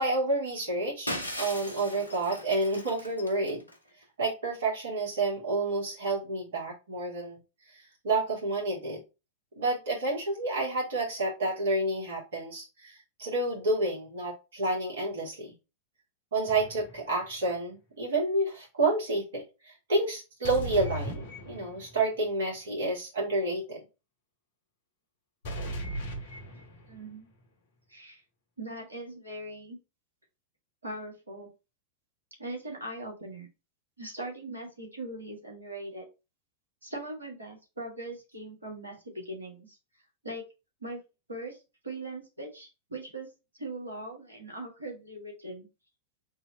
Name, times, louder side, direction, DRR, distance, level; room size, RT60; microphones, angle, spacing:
voice 1, 0.0-3.6 4.2-7.4 8.0-9.0 9.6-15.5 16.3-23.8, right 2 dB, 60° right, -3 dB, 2.3 m, -29 dB
Shatter, 1.1-3.8, equal, 85° left, 0.9 m, -38 dB
sound 1, 16.5-17.1 20.4-22.0 25.4-27.1, right 1 dB, 55° left, 1.1 m, -37 dB
voice 2, 26.9-27.3 27.9-28.2 28.6-29.8 30.8-31.5 32.4-33.5 34.0-36.1 36.8-39.8 40.2-40.4 40.8-41.0 41.3-43.3 43.6-45.7, right 2 dB, 80° right, 1 dB, 1.5 m, -40 dB
3.8 x 3.0 x 4.1 m, 0.28 s
figure-of-eight pair, 90°, 0 cm